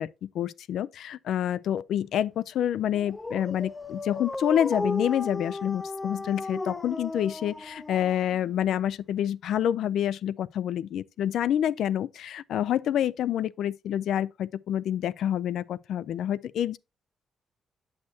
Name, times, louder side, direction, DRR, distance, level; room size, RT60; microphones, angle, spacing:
voice 1, 0.0-16.8, left 10 dB, 80° left, 0.3 m, -28 dB
Dog, 2.9-8.6, left 2 dB, 20° left, 0.5 m, -35 dB
8.7 x 6.4 x 2.8 m
cardioid pair, 120°, 0 cm